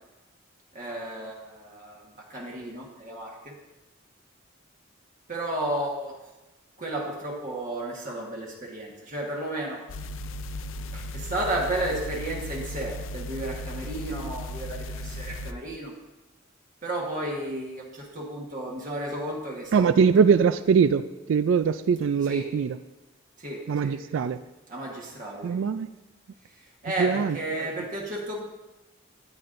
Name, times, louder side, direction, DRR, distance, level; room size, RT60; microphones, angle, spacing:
voice 1, 0.7-3.5 5.3-6.3 6.8-9.9 10.9-15.9 16.8-20.1 22.3-22.5 23.4-24.0 24.7-25.6 26.8-28.4, right 1 dB, 40° right, -2 dB, 1.4 m, -33 dB
sound 1, 9.9-15.5, left 1 dB, 80° left, 0.5 m, -36 dB
voice 2, 19.7-22.8 23.7-24.4 25.4-25.9 27.0-27.7, right 6 dB, 70° right, 12 dB, 0.3 m, -22 dB
13.5 x 9.2 x 2.6 m, 1.1 s
head